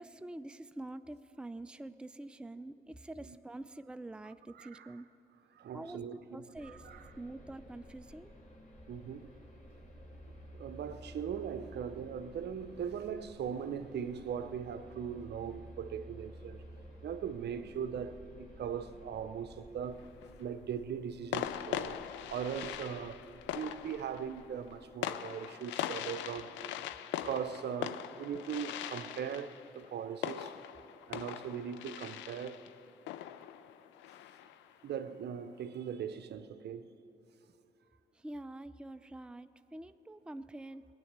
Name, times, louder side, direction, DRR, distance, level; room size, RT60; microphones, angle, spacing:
voice 1, 0.0-5.1 5.7-6.9 7.2-8.3 38.1-40.9, right 1 dB, 5° right, 0.5 m, -46 dB
voice 2, 4.5-4.9 5.5-7.1 8.9-9.3 10.5-16.6 17.0-22.0 22.3-26.6 27.2-30.5 31.1-32.6 34.8-37.0, right 8 dB, 65° right, 0.7 m, -40 dB
sound 1, 6.5-24.9, equal, 45° left, 2.6 m, -54 dB
sound 2, 19.8-20.4 21.3-34.7, left 11 dB, 85° left, 0.4 m, -41 dB
19.0 x 8.9 x 6.7 m
hypercardioid pair, 45°, 19 cm